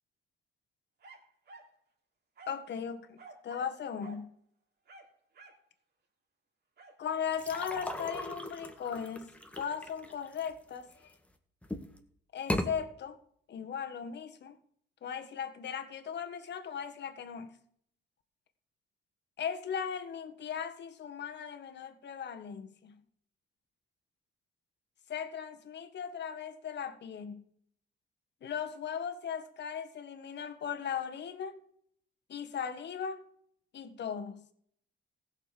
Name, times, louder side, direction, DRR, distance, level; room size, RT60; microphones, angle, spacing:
sound 1, 1.0-1.8 2.4-2.7 3.2-3.8 4.0-4.3 4.9-5.7 6.8-7.0, right 3 dB, 55° right, 3.5 m, -52 dB
voice 1, 2.5-3.2 3.4-4.3 7.0-9.3 9.5-11.1 12.3-13.2 13.5-14.5 15.0-17.5 19.4-23.0 25.1-27.4 28.4-31.6 32.3-33.2 33.7-34.4, left 7 dB, 60° left, 1.6 m, -38 dB
sound 2, 7.3-11.1 11.6-12.0 12.4-12.7, left 1 dB, 5° left, 1.7 m, -37 dB
15.5 x 6.8 x 6.7 m
cardioid pair, 90°, 20 cm